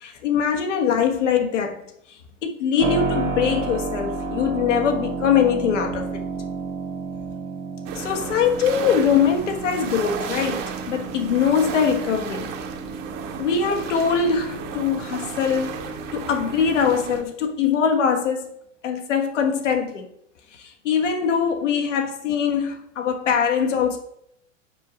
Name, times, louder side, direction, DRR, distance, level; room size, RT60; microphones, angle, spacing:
voice 1, 0.0-1.8 2.4-6.1 7.9-12.5 13.4-15.8 16.1-18.5 18.8-20.1 20.5-24.0, left 7 dB, 70° left, 3 dB, 1.4 m, -22 dB
Keyboard (musical), 2.8-15.5, right 4 dB, 80° right, 1.3 m, -32 dB
sound 1, 7.9-17.2, right 6 dB, 45° right, 1.2 m, -33 dB
5.9 x 4.6 x 6.2 m, 0.74 s
figure-of-eight pair, 95°, 38 cm